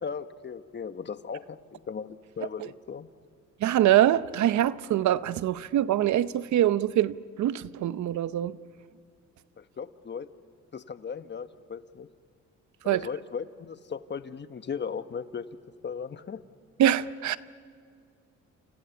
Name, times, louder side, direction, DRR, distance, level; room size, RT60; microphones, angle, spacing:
voice 1, 0.0-3.1 9.6-10.3 10.7-12.1 12.8-15.5 15.8-16.4, left 6 dB, 35° left, 1.2 m, -37 dB
voice 2, 3.6-8.6 12.9-13.0 16.8-17.4, right 12 dB, 70° right, 0.8 m, -24 dB
29.0 x 29.0 x 7.2 m
cardioid pair, 90°, 30 cm